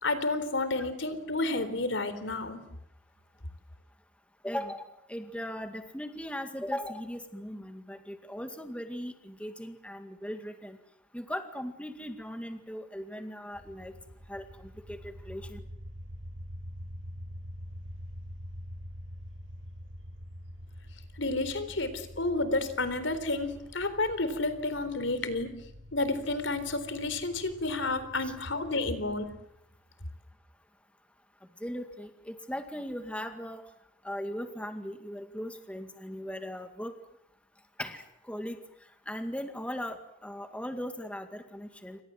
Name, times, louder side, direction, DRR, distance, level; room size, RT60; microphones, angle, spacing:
voice 1, 0.0-2.6 21.2-25.5 25.9-29.3, left 2 dB, 75° left, 12 dB, 3.9 m, -30 dB
voice 2, 4.4-10.8 11.1-13.9 14.3-15.6 28.2-28.3 31.6-33.6 34.0-36.9 37.8-38.6 39.1-42.0, equal, 5° left, 7 dB, 2.1 m, -38 dB
sound 1, 13.5-29.4, equal, 85° right, 7.6 m, -46 dB
29.0 x 25.5 x 7.8 m, 0.77 s
head